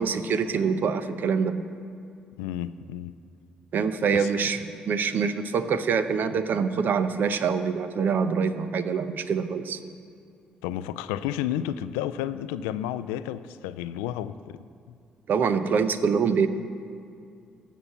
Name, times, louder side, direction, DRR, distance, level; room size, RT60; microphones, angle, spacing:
voice 1, 0.0-1.6 3.7-9.8 15.3-16.5, right 6 dB, 55° right, 11 dB, 0.7 m, -25 dB
voice 2, 2.4-3.2 4.1-4.3 10.6-14.6, left 11 dB, 85° left, 14 dB, 0.3 m, -31 dB
14.0 x 5.9 x 7.3 m, 2.4 s
hypercardioid pair, 50°, 4 cm